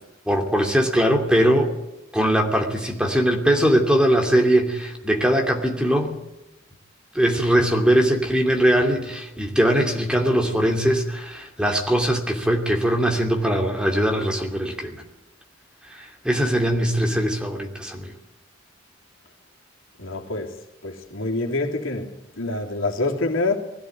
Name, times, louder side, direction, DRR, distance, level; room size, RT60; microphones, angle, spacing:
voice 1, 0.3-1.7 2.1-6.2 7.1-15.0 15.9-18.1, equal, 5° right, 2.7 m, -21 dB
voice 2, 20.0-20.5 20.8-23.6, left 2 dB, 80° left, 3.1 m, -26 dB
21.0 x 16.0 x 9.4 m
head